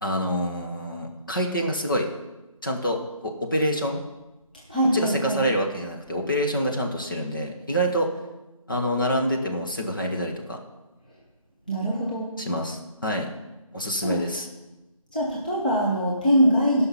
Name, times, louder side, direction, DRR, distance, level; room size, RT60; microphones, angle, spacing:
voice 1, 0.0-2.1 2.6-4.0 4.9-8.1 8.7-10.6 12.4-13.3 13.7-14.5, equal, 35° left, 0 dB, 1.4 m, -26 dB
voice 2, 4.7-5.4 11.7-12.3 14.0-14.2 15.1-16.8, equal, 15° left, -7 dB, 1.2 m, -22 dB
15.5 x 5.8 x 6.0 m, 1.0 s
figure-of-eight pair, 170°, 18 cm